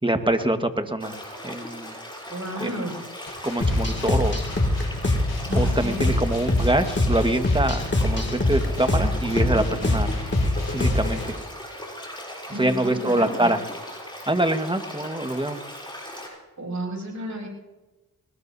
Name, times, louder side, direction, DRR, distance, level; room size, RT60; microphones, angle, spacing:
voice 1, 0.0-1.2 1.4-1.9 2.6-2.8 3.4-4.4 5.5-10.1 10.7-11.4 12.6-13.6 14.3-15.6, right 1 dB, 15° right, 7 dB, 1.5 m, -25 dB
sound 1, 1.0-16.3, equal, 15° left, 6.8 m, -39 dB
voice 2, 2.3-3.0 5.5-6.2 9.5-9.9 12.5-13.6 15.5-15.7 16.6-17.5, right 1 dB, 55° right, -2 dB, 7.0 m, -33 dB
sound 2, 3.3-11.3, left 4 dB, 70° left, 5.4 m, -40 dB
sound 3, 3.6-11.3, left 1 dB, 30° left, 2.3 m, -24 dB
21.5 x 19.5 x 2.8 m, 1.1 s
cardioid pair, 45°, 36 cm